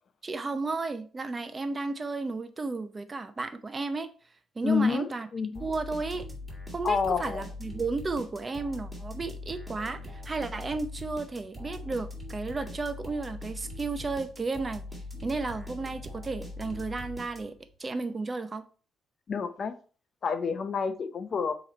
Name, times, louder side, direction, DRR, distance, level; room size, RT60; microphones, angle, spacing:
voice 1, 0.2-4.1 4.6-5.3 5.6-6.3 6.7-14.8 15.2-17.5 17.8-18.6, right 3 dB, 30° right, 0.7 m, -33 dB
voice 2, 4.6-5.7 6.8-7.4 19.3-19.7 20.2-21.5, left 5 dB, 50° left, 0.6 m, -29 dB
sound 1, 5.5-17.7, left 2 dB, 5° right, 2.0 m, -41 dB
7.5 x 3.1 x 4.2 m
cardioid pair, 90°, 0 cm